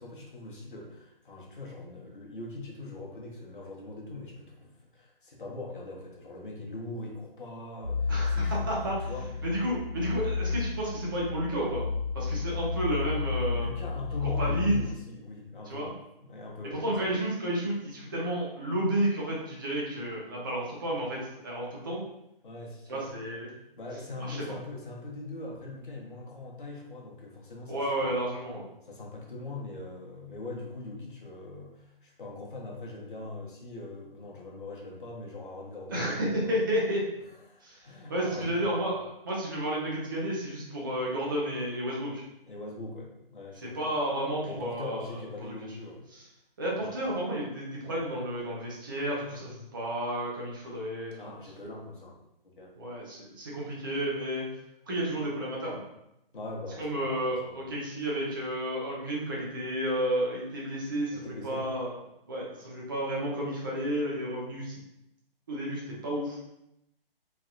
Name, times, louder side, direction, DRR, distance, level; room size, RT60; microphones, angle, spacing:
voice 1, 0.0-8.7 9.1-9.3 13.5-15.9 16.2-17.1 22.4-23.1 23.8-28.2 28.9-36.6 37.5-38.6 42.4-43.9 44.4-46.1 51.2-52.1 52.6-52.7 56.3-57.6 61.1-61.6, left 2 dB, 60° left, -2 dB, 1.0 m, -41 dB
sound 1, 7.8-14.9, left 4 dB, 55° right, 0.9 m, -32 dB
voice 2, 8.1-9.1 9.4-11.8 12.1-13.7 14.2-14.8 15.7-15.9 16.7-22.0 22.9-23.5 24.2-24.6 27.7-28.7 35.9-37.0 37.6-37.8 38.1-42.2 43.6-45.0 45.4-45.5 46.1-46.2 46.6-51.3 52.8-54.5 54.9-55.8 56.8-61.9 62.3-64.8 65.5-66.4, right 1 dB, 20° right, -4 dB, 0.6 m, -31 dB
3.2 x 2.7 x 2.6 m, 0.83 s
figure-of-eight pair, 140°, 29 cm